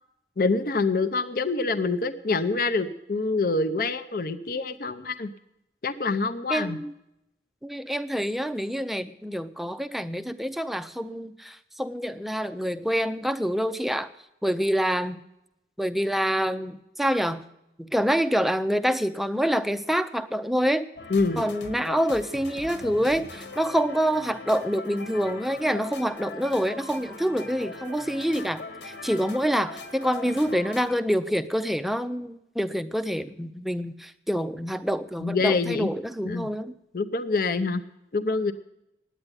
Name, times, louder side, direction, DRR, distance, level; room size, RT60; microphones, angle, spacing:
voice 1, 0.4-5.3 5.8-6.8 21.1-21.5 35.2-35.9 36.2-36.5 36.9-37.8 38.1-38.5, left 3 dB, 50° left, 9 dB, 0.6 m, -26 dB
voice 2, 6.5-6.9 7.6-14.1 14.4-15.2 15.8-17.4 17.8-20.9 21.4-36.7, equal, ahead, 11 dB, 0.4 m, -26 dB
sound 1, 21.0-31.0, left 3 dB, 85° left, 1.4 m, -41 dB
10.0 x 8.9 x 9.6 m, 0.86 s
head